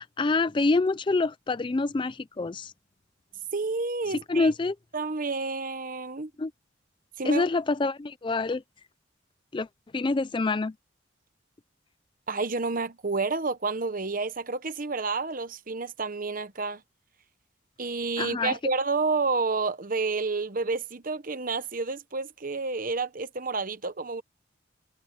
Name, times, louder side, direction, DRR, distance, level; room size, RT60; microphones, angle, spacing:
voice 1, 0.0-2.7 4.3-4.8 6.4-6.5 7.2-8.6 9.5-9.7 9.9-10.7 18.2-18.6, left 3 dB, 25° left, 0.4 m, -26 dB
voice 2, 3.5-4.5 4.9-6.3 7.2-7.5 12.3-16.8 17.8-24.2, right 3 dB, 45° right, 1.0 m, -30 dB
head